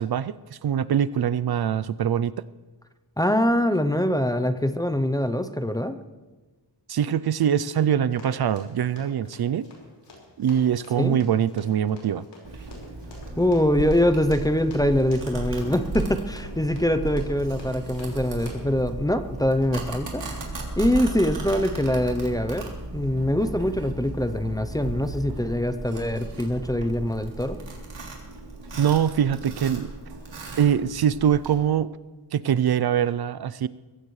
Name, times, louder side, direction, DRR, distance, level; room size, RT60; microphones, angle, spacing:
voice 1, 0.0-2.3 6.9-9.7 10.4-12.3 28.8-29.9 30.6-32.0 32.3-33.7, right 9 dB, 60° right, 16 dB, 0.5 m, -23 dB
voice 2, 3.2-6.0 11.0-11.2 13.4-20.4 20.8-27.6, left 1 dB, 10° left, 9 dB, 0.6 m, -24 dB
Run, 8.1-18.8, left 2 dB, 70° left, 5.1 m, -46 dB
Domestic sounds home sounds, 12.4-31.5, right 2 dB, 80° right, 3.2 m, -36 dB
22.5 x 16.5 x 3.2 m, 1.2 s
wide cardioid pair, 175°, 43 cm